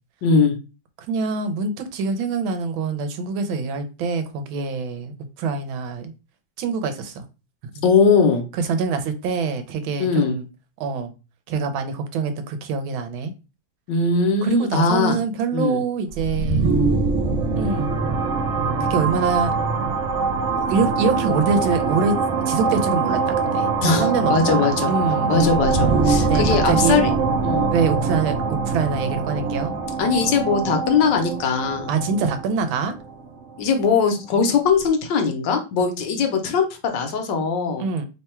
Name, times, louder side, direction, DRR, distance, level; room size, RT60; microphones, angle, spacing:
voice 1, 0.2-0.6 7.8-8.4 10.0-10.4 13.9-15.2 15.5-15.8 23.8-24.9 25.3-27.1 27.4-27.7 30.0-31.9 33.6-37.9, left 5 dB, 70° left, 5 dB, 1.3 m, -20 dB
voice 2, 1.1-5.1 5.4-6.1 6.6-7.2 8.5-10.5 10.8-11.1 11.5-13.3 14.4-16.7 17.6-18.0 18.8-19.5 20.6-22.2 22.5-25.8 26.2-27.0 27.7-29.8 31.9-32.9 37.8-38.1, right 5 dB, 80° right, 8 dB, 1.5 m, -25 dB
sound 1, 16.1-33.8, right 4 dB, 60° right, 0.7 m, -23 dB
3.5 x 2.2 x 4.2 m, 0.30 s
omnidirectional pair, 2.1 m